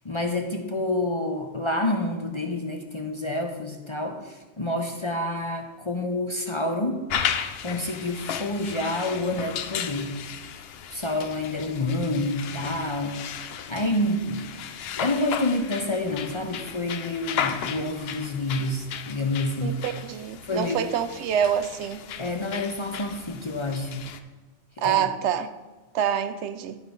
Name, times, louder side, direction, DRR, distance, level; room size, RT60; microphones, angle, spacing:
voice 1, 0.0-7.0 7.6-10.1 10.9-13.2 13.7-14.5 15.0-19.8 20.4-20.8 22.2-24.1 24.8-25.0, left 1 dB, 30° left, 3 dB, 0.6 m, -28 dB
sound 1, 7.1-24.2, left 8 dB, 65° left, 0.8 m, -35 dB
voice 2, 19.6-22.0 24.8-25.5 25.9-26.8, right 8 dB, 80° right, 11 dB, 0.9 m, -26 dB
10.5 x 4.4 x 5.2 m, 1.3 s
omnidirectional pair, 1.2 m